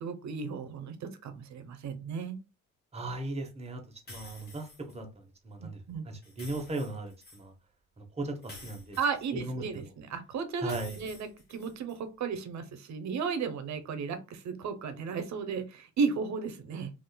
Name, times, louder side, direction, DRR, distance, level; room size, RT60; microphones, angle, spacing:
voice 1, 0.0-2.4 5.6-6.0 9.0-16.9, right 5 dB, 65° right, 10 dB, 0.7 m, -34 dB
voice 2, 2.9-5.1 5.4-7.5 8.0-9.0 9.3-9.8 10.6-11.0, right 2 dB, 20° right, 4 dB, 0.8 m, -37 dB
sound 1, 4.1-5.0 6.2-7.4 8.4-9.8 10.6-12.0, left 2 dB, 35° left, 1.3 m, -50 dB
3.6 x 2.5 x 2.2 m, 0.29 s
cardioid pair, 90°, 30 cm